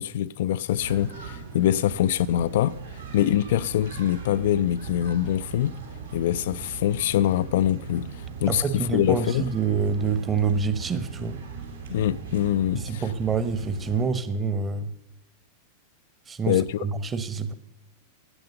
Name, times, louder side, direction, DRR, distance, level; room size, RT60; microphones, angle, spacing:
voice 1, 0.0-5.8 6.1-9.5 11.9-13.0 16.5-16.8, left 12 dB, 55° left, 0.4 m, -24 dB
sound 1, 0.8-14.0, right 5 dB, 70° right, 3.0 m, -39 dB
voice 2, 8.5-11.4 12.7-14.9 16.3-17.5, right 5 dB, 20° right, 1.1 m, -27 dB
13.0 x 9.3 x 6.7 m
figure-of-eight pair, 90°, 0 cm